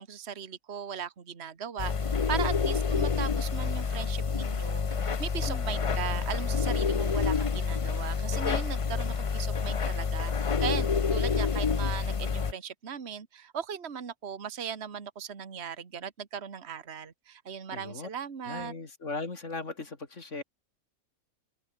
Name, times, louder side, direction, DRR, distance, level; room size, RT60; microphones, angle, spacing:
voice 1, 0.0-18.7, right 7 dB, 50° right, 1.8 m, -38 dB
sound 1, 1.8-12.5, left 5 dB, 35° left, 0.6 m, -28 dB
voice 2, 17.7-18.1 18.5-20.4, left 3 dB, 55° left, 2.9 m, -38 dB
omnidirectional pair, 1.5 m